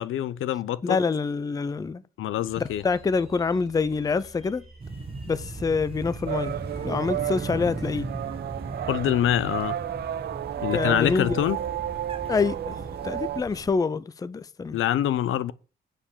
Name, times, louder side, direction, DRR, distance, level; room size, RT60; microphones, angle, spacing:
voice 1, 0.0-1.0 2.2-2.8 8.9-9.8 10.6-11.6 14.7-15.5, left 11 dB, 75° left, 0.7 m, -25 dB
voice 2, 0.8-2.0 2.6-4.6 5.3-6.5 6.8-8.1 10.6-11.4 12.3-12.8 13.0-14.8, left 4 dB, 15° left, 0.5 m, -26 dB
sound 1, 2.5-13.8, right 2 dB, ahead, 4.3 m, -49 dB
sound 2, 4.8-13.7, right 3 dB, 25° right, 1.5 m, -38 dB
sound 3, 6.3-13.4, right 12 dB, 55° right, 0.4 m, -32 dB
8.8 x 5.0 x 7.2 m
cardioid pair, 130°, 21 cm